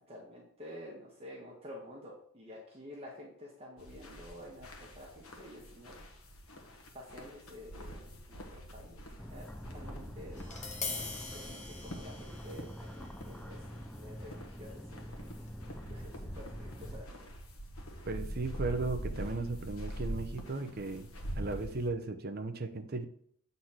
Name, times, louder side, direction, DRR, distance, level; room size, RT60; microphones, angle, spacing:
voice 1, 0.1-6.1 6.9-9.0 9.3-9.4 9.7-10.5 10.8-13.6 13.9-15.5 15.9-17.2, left 1 dB, 25° right, -4 dB, 1.5 m, -50 dB
sound 1, 3.8-21.9, equal, 75° left, 1.3 m, -45 dB
sound 2, 9.2-17.0, equal, 5° left, 0.4 m, -46 dB
Tap, 10.4-16.5, left 4 dB, 35° left, 1.1 m, -45 dB
voice 2, 18.1-21.1 21.3-23.1, right 3 dB, 45° right, 7 dB, 0.7 m, -36 dB
8.0 x 4.2 x 5.8 m, 0.63 s
head